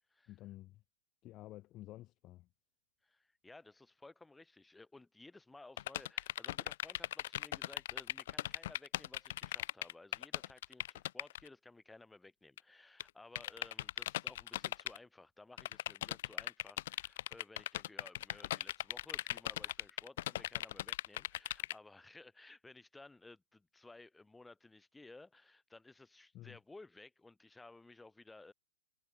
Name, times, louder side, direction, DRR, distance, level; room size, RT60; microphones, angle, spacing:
voice 1, 0.3-0.8 1.2-2.5 26.3-26.6, left 16 dB, 35° left, 1.1 m, -51 dB
voice 2, 3.0-28.5, left 2 dB, 5° left, 5.4 m, -57 dB
sound 1, 5.8-11.5 12.6-12.7 13.0-13.1 13.4-15.0 15.6-21.7, left 14 dB, 60° left, 0.4 m, -38 dB
hypercardioid pair, 110°, 0 cm